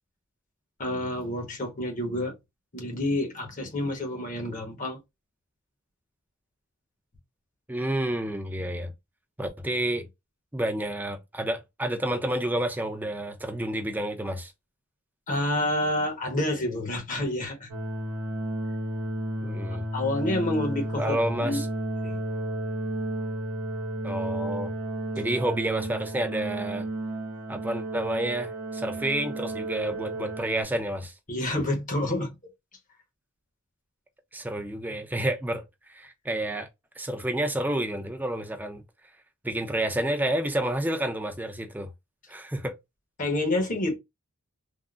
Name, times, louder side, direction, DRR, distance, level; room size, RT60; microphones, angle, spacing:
voice 1, 0.8-2.3 2.7-5.0 15.3-17.7 19.9-21.6 22.0-22.2 31.3-32.3 43.2-44.0, left 1 dB, 35° left, 0.9 m, -28 dB
voice 2, 7.7-8.9 9.4-10.1 10.5-14.5 19.4-19.8 21.0-21.7 24.0-24.7 25.1-26.9 27.5-31.1 34.3-35.6 35.9-36.7 37.0-38.8 39.4-41.9 42.3-42.7, right 1 dB, 10° right, 0.5 m, -29 dB
sound 1, 17.7-30.6, right 1 dB, 85° right, 0.7 m, -32 dB
3.6 x 2.0 x 2.3 m
head